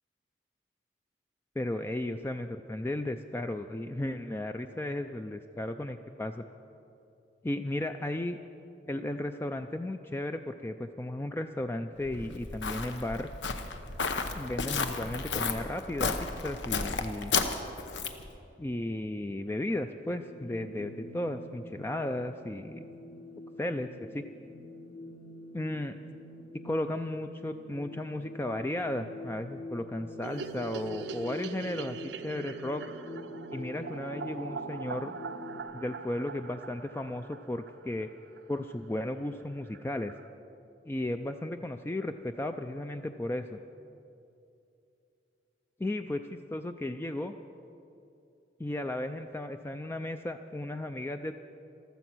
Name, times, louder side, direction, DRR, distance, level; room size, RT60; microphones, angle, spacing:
voice 1, 1.6-6.4 7.4-8.4 8.9-13.3 14.4-17.3 18.6-22.9 23.6-24.2 25.5-26.0 26.6-33.0 33.5-35.1 35.7-38.1 38.5-40.1 40.8-43.6 45.8-47.3 48.6-51.3, left 1 dB, 15° left, 7 dB, 0.3 m, -35 dB
Walk footsteps, 12.0-18.3, left 4 dB, 90° left, 0.9 m, -33 dB
sound 1, 20.1-35.6, left 1 dB, 50° left, 1.7 m, -46 dB
sound 2, 30.2-38.4 38.7-38.8 39.1-39.2 39.4-39.5 39.7-40.3, right 5 dB, 75° right, 0.6 m, -42 dB
15.0 x 13.0 x 6.1 m, 2.7 s
head